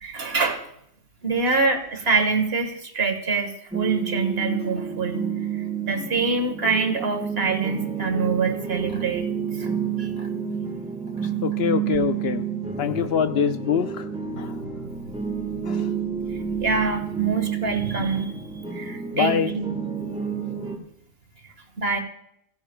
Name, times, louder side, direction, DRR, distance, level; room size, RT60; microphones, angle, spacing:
voice 1, 0.0-0.6 1.2-5.3 5.8-9.3 9.6-9.7 10.0-10.3 14.3-15.1 15.5-15.6 16.2-18.4 18.7-19.6 21.8-22.0, right 4 dB, 75° right, 6 dB, 1.8 m, -25 dB
sound 1, 3.7-20.8, right 7 dB, 5° right, 1.4 m, -30 dB
voice 2, 11.4-12.4 12.8-14.1 14.4-14.6 15.7-15.9 19.1-19.6, left 8 dB, 75° left, 10 dB, 1.0 m, -24 dB
29.5 x 10.5 x 2.3 m, 0.75 s
omnidirectional pair, 1.0 m